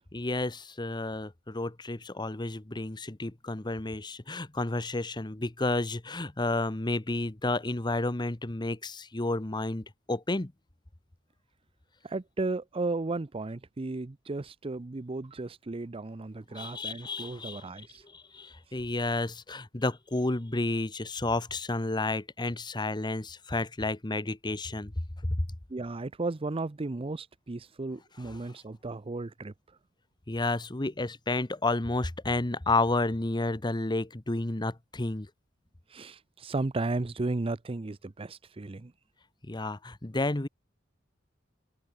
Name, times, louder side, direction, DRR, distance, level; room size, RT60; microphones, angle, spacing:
voice 1, 0.1-10.5 16.5-17.6 18.1-24.9 25.3-25.4 28.2-28.4 30.3-35.3 39.5-40.5, left 2 dB, 20° left, 1.0 m, -31 dB
voice 2, 12.0-18.0 25.7-29.5 35.9-38.9, right 2 dB, 30° right, 0.6 m, -34 dB
head